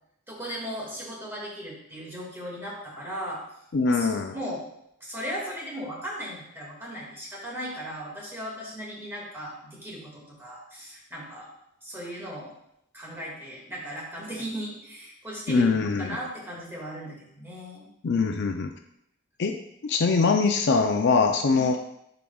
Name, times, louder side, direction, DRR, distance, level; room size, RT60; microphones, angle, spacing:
voice 1, 0.3-3.4 3.9-4.6 5.0-11.5 11.8-12.5 12.9-17.9 21.5-21.7, equal, 10° right, -4 dB, 1.9 m, -37 dB
voice 2, 3.7-4.3 15.5-16.2 18.0-18.7 19.4-19.5 19.8-21.8, left 4 dB, 55° left, 5 dB, 0.4 m, -23 dB
10.5 x 4.8 x 2.3 m, 0.78 s
head